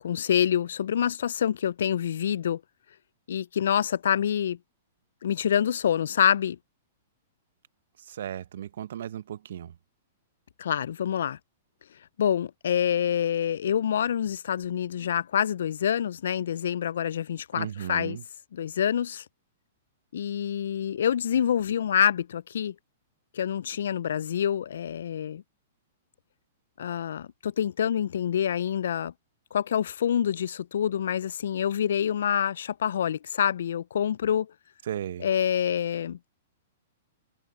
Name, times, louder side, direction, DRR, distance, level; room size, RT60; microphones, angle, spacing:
voice 1, 0.0-2.6 3.3-4.6 5.2-6.6 10.6-11.4 12.2-18.2 18.5-19.2 20.1-22.7 23.3-25.4 26.8-29.1 29.5-34.5 35.2-36.3, left 9 dB, 75° left, 0.3 m, -26 dB
voice 2, 8.0-9.8 17.5-18.2 34.8-35.3, right 10 dB, 70° right, 0.9 m, -35 dB
open air
hypercardioid pair, 120°, 0 cm